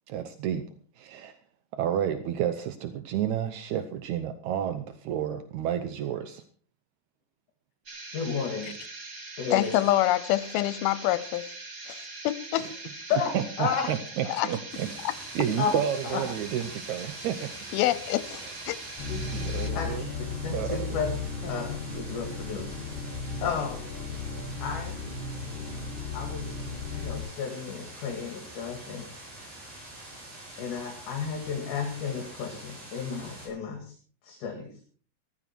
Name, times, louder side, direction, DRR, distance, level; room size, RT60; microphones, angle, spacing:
voice 1, 0.1-0.7 1.0-1.3 1.7-6.4 12.6-12.7 13.3-14.9 15.4-17.5 18.4-18.5 19.3-20.1 20.5-20.8, right 9 dB, 75° right, 1.7 m, -30 dB
sound 1, 7.9-19.7, right 3 dB, 35° right, 1.9 m, -42 dB
voice 2, 8.1-8.7 9.4-9.7 13.1-13.9 15.6-15.8 16.0-16.2 19.1-19.2 19.8-21.1 21.4-22.9 23.4-23.8 24.6-25.0 26.1-26.5 26.9-29.5 30.6-34.0 34.2-34.8, left 6 dB, 60° left, 3.4 m, -33 dB
voice 3, 9.5-11.5 11.9-12.7 14.4-14.5 15.0-15.1 17.7-18.8, left 15 dB, 85° left, 2.7 m, -26 dB
sound 2, 14.7-33.5, right 1 dB, 60° right, 9.6 m, -46 dB
sound 3, 19.0-27.2, left 4 dB, 30° left, 7.8 m, -35 dB
14.5 x 14.0 x 4.6 m
omnidirectional pair, 4.3 m